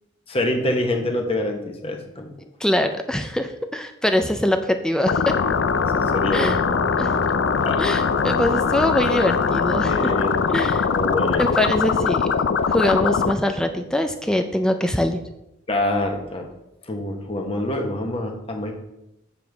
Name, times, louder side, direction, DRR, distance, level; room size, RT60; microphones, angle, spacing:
voice 1, 0.3-2.3 5.9-6.6 7.6-7.9 9.9-10.6 10.9-11.4 15.7-16.4 16.9-18.7, left 1 dB, 30° left, 3 dB, 1.1 m, -26 dB
voice 2, 2.6-5.4 6.3-6.6 7.0-7.1 7.8-10.1 10.5-10.9 11.4-15.2, left 1 dB, 5° left, 6 dB, 0.4 m, -23 dB
sound 1, 5.1-13.3, left 5 dB, 65° left, 0.4 m, -21 dB
7.9 x 7.0 x 3.5 m, 0.88 s
head